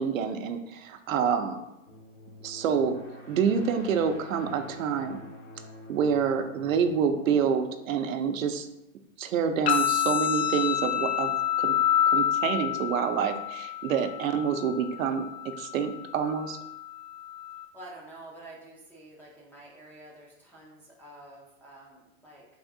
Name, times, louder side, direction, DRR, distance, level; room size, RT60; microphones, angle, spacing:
voice 1, 0.0-1.6 2.4-3.0 3.3-5.2 5.9-8.7 9.2-11.8 12.1-16.6, right 7 dB, 80° right, 7 dB, 0.6 m, -27 dB
sound 1, 1.9-8.5, left 1 dB, 75° left, 1.1 m, -47 dB
sound 2, 9.7-17.7, left 10 dB, 55° left, 0.6 m, -28 dB
voice 2, 17.7-22.5, right 1 dB, 5° left, -5 dB, 0.4 m, -48 dB
3.5 x 2.5 x 3.6 m, 0.89 s
hypercardioid pair, 120°, 39 cm